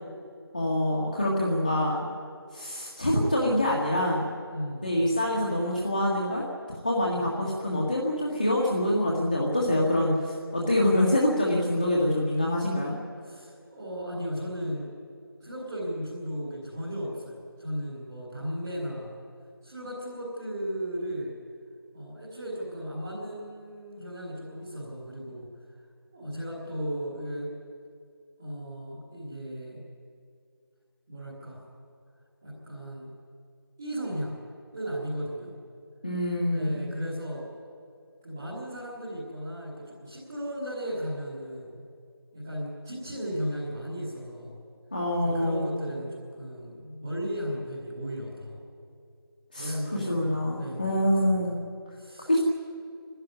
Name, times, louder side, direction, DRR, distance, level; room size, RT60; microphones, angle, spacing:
voice 1, 0.5-2.1 2.5-4.3 4.8-6.4 6.8-13.0 36.0-36.8 44.9-45.7 49.5-51.6 52.3-52.4, left 1 dB, 25° left, -4 dB, 1.8 m, -25 dB
voice 2, 4.5-5.0 7.1-7.3 13.2-14.9 15.4-19.1 19.6-21.3 21.9-25.4 26.1-27.5 28.4-29.8 31.1-31.6 32.4-33.1 33.8-34.4 34.7-35.5 36.5-37.5 38.2-41.8 42.3-44.6 45.2-48.6 49.6-51.6 52.0-52.3, equal, 10° right, -13 dB, 1.8 m, -35 dB
25.5 x 12.5 x 9.8 m, 2.3 s
figure-of-eight pair, 175°, 13 cm